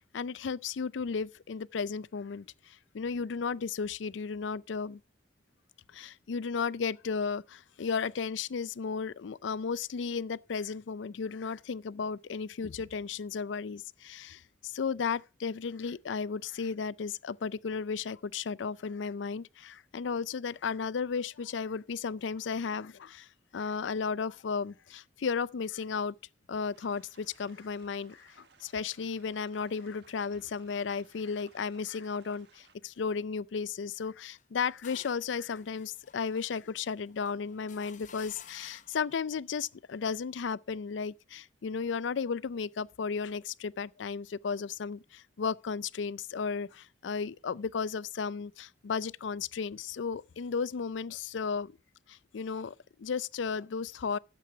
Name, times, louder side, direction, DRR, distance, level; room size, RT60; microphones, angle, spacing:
voice 1, 0.0-5.0 5.9-26.1 26.5-51.7 52.1-54.2, left 5 dB, 80° left, 0.4 m, -34 dB
sound 1, 26.7-32.8, right 4 dB, 65° right, 1.6 m, -62 dB
sound 2, 34.4-39.1, left 7 dB, 40° left, 0.9 m, -54 dB
12.0 x 7.7 x 4.6 m
head